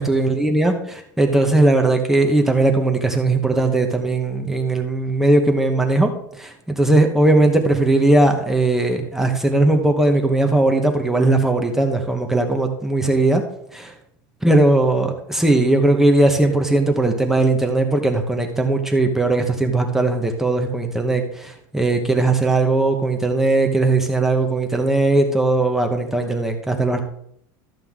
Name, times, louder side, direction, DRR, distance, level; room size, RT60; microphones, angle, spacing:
voice 1, 0.0-6.1 6.4-13.4 13.7-13.9 14.4-27.0, right 2 dB, 5° right, 4 dB, 1.0 m, -18 dB
13.5 x 7.7 x 3.7 m, 0.69 s
supercardioid pair, 165°, 10 cm